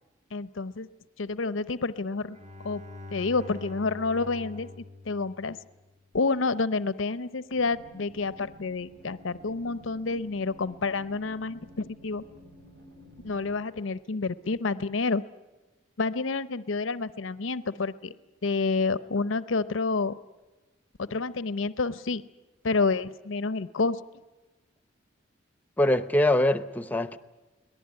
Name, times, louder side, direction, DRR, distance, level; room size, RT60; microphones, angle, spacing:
voice 1, 0.3-0.9 1.2-2.4 2.6-2.8 3.1-4.7 5.1-5.6 6.1-12.2 13.2-15.2 16.0-18.2 18.4-20.2 21.0-22.2 22.6-24.0, left 3 dB, 80° left, 15 dB, 0.7 m, -29 dB
Bowed string instrument, 2.3-6.0, left 2 dB, 35° right, 1.3 m, -45 dB
sound 1, 7.5-13.6, equal, 70° right, 3.2 m, -52 dB
voice 2, 25.8-27.2, left 1 dB, 10° left, 12 dB, 0.8 m, -23 dB
23.5 x 19.0 x 9.7 m, 1.1 s
head